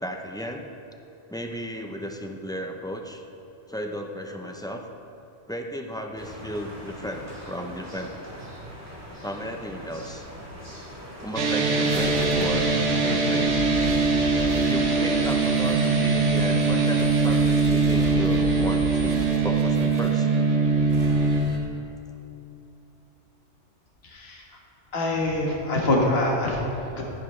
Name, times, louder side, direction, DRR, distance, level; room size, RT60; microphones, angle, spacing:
voice 1, 0.0-0.7 1.3-3.2 3.7-4.9 5.5-8.2 9.2-10.2 11.2-12.7 13.0-13.7 14.5-20.3, equal, 5° left, 3 dB, 0.4 m, -34 dB
sound 1, 6.2-15.9, equal, 15° right, 2.4 m, -42 dB
sound 2, 11.3-21.4, right 4 dB, 80° right, 1.4 m, -22 dB
sound 3, 11.8-20.1 20.8-21.6, right 1 dB, 60° right, 1.7 m, -37 dB
voice 2, 24.0-24.4 24.9-27.0, left 1 dB, 60° left, -2 dB, 1.7 m, -25 dB
14.5 x 10.0 x 3.3 m, 2.9 s
omnidirectional pair, 1.2 m